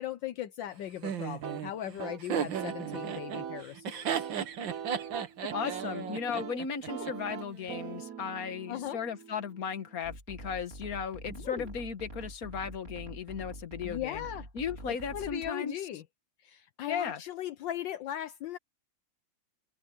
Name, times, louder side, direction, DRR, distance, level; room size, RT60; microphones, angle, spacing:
voice 1, 0.0-4.3 5.4-5.7 6.5-6.6 8.7-9.0 11.3-11.7 13.8-14.5 14.9-16.0 16.4-18.6, left 12 dB, 75° left, 1.5 m, -38 dB
Laughter, 1.0-7.1, right 8 dB, 75° right, 2.0 m, -35 dB
sound 1, 1.4-10.0, right 8 dB, 50° right, 1.2 m, -42 dB
voice 2, 5.5-14.2 14.5-15.7 16.9-17.2, left 6 dB, 50° left, 1.8 m, -36 dB
sound 2, 10.0-15.5, right 1 dB, 30° right, 5.2 m, -45 dB
open air
omnidirectional pair, 2.1 m